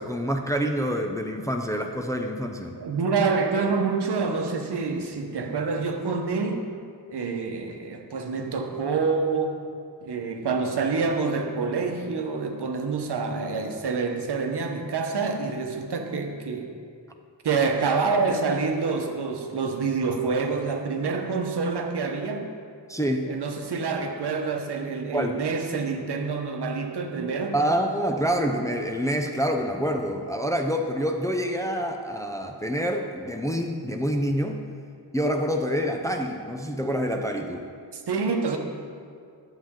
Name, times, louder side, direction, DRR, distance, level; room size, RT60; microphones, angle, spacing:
voice 1, 0.0-2.7 22.9-23.3 25.1-25.4 27.5-34.6 35.1-37.6, equal, 10° left, 3 dB, 0.5 m, -27 dB
voice 2, 2.8-6.7 7.1-9.6 10.0-16.7 17.4-22.4 23.3-27.5 37.9-38.6, right 4 dB, 65° right, 4 dB, 1.0 m, -27 dB
11.5 x 7.5 x 3.7 m, 2.2 s
wide cardioid pair, 140°, 43 cm